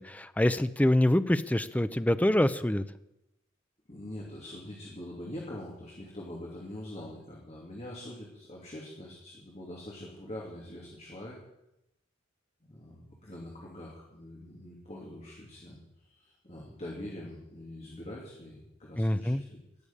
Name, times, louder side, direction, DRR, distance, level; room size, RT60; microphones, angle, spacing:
voice 1, 0.0-2.8 19.0-19.4, left 1 dB, 10° left, 12 dB, 0.5 m, -25 dB
voice 2, 3.9-11.4 12.7-19.6, left 1 dB, 35° left, -3 dB, 2.7 m, -44 dB
17.5 x 6.9 x 8.7 m, 0.88 s
head